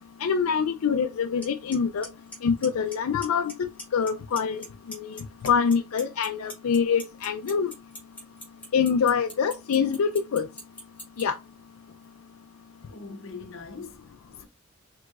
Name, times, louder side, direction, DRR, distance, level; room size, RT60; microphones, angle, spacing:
voice 1, 0.2-2.1 2.4-5.2 5.4-7.7 8.7-10.5 11.2-11.4, left 6 dB, 90° left, 0.4 m, -25 dB
Clock, 1.4-1.5 1.7-2.1 2.3-2.9 3.2-3.5 3.8-4.7 4.9-11.2, left 1 dB, 5° left, 1.7 m, -39 dB
voice 2, 12.9-14.5, left 4 dB, 70° left, 0.8 m, -42 dB
4.6 x 3.6 x 2.5 m
head